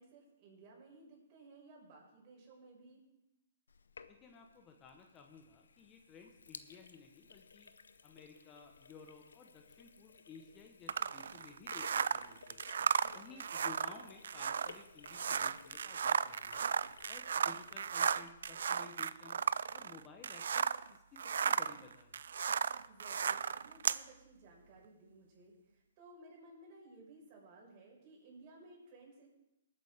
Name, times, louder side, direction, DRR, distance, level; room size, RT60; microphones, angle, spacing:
voice 1, 0.0-3.0 13.0-13.5 22.9-29.3, right 2 dB, 40° right, -2 dB, 5.4 m, -58 dB
Sink (filling or washing), 3.7-18.8, left 5 dB, 80° left, 0.7 m, -58 dB
voice 2, 4.1-7.7 8.0-12.7 13.1-16.7 17.1-19.4 19.7-22.2, left 5 dB, 25° left, 3 dB, 1.2 m, -56 dB
sound 1, 10.9-20.9 21.2-24.0, right 7 dB, 70° right, 0.3 m, -35 dB
20.0 x 8.8 x 3.6 m, 0.89 s
hypercardioid pair, 130°, 0 cm